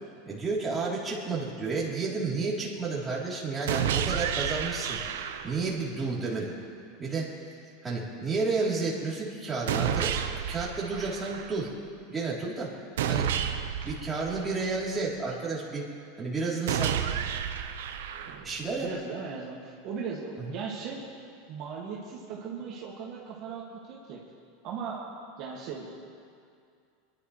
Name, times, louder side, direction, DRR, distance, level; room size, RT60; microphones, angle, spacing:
voice 1, 0.2-5.0 5.4-6.5 7.0-7.3 7.8-10.2 10.5-11.7 12.1-12.7 13.1-13.3 13.8-15.9 16.2-17.0 18.3-18.9, right 4 dB, 15° right, -6 dB, 3.5 m, -31 dB
sound 1, 3.7-5.7 9.7-11.7 13.0-15.0 16.7-18.7, right 9 dB, 85° right, 0.8 m, -31 dB
voice 2, 18.8-21.0 21.5-24.2 24.6-25.0 25.4-25.9, right 5 dB, 50° right, -4 dB, 2.1 m, -37 dB
25.5 x 11.5 x 3.3 m, 2.3 s
supercardioid pair, 130°, 0 cm